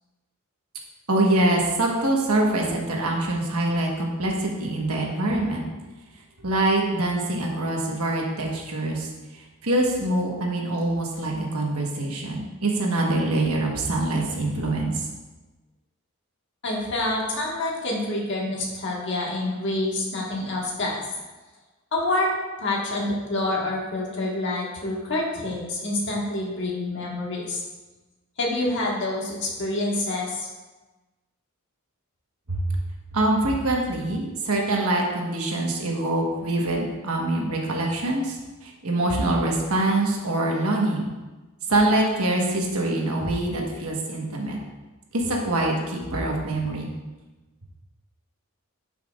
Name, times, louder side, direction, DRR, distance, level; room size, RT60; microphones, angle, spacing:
voice 1, 1.1-5.7 6.4-15.1 32.5-32.8 33.1-38.4 38.6-41.1 41.7-44.6 45.1-46.9, right 2 dB, 85° right, -1 dB, 1.4 m, -24 dB
voice 2, 16.6-21.0 21.9-22.3 22.6-27.6 28.4-30.5, left 2 dB, 55° left, -3 dB, 1.7 m, -27 dB
11.0 x 5.7 x 2.5 m, 1.2 s
head